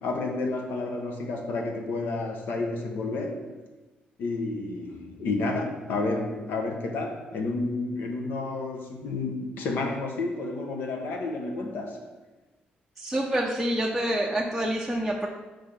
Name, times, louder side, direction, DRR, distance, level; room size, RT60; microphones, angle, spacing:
voice 1, 0.0-3.5 4.2-12.0, left 3 dB, 75° left, 3 dB, 1.1 m, -30 dB
voice 2, 13.0-15.3, right 1 dB, ahead, -2 dB, 0.5 m, -27 dB
5.8 x 5.2 x 5.8 m, 1.2 s
cardioid pair, 165°, 3 cm